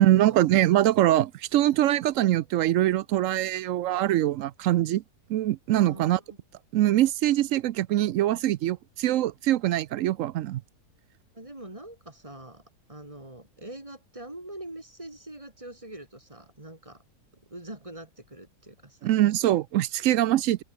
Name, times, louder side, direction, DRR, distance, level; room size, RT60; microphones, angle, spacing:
voice 1, 0.0-5.0 5.3-6.2 6.7-10.6 19.0-20.6, right 13 dB, 70° right, 0.8 m, -23 dB
voice 2, 5.8-6.4 11.3-12.6 12.9-17.0 17.5-19.1, right 1 dB, 20° right, 2.9 m, -43 dB
open air
omnidirectional pair, 1.7 m